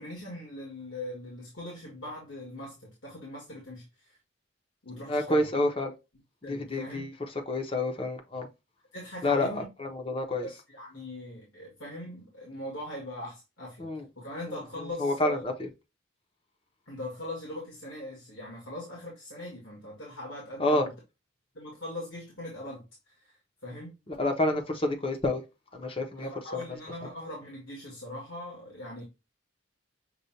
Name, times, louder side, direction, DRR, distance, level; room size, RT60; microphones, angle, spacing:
voice 1, 0.0-4.2 4.8-5.5 6.4-7.1 8.9-9.7 10.4-13.9 14.2-15.4 16.9-20.9 21.5-23.9 26.2-29.0, left 1 dB, 75° left, 1.8 m, -41 dB
voice 2, 5.1-5.9 6.4-7.1 7.5-8.5 9.2-10.5 13.8-14.0 15.0-15.7 20.6-20.9 24.1-25.4 25.7-26.3, left 1 dB, 30° left, 0.8 m, -28 dB
6.8 x 2.4 x 2.7 m
head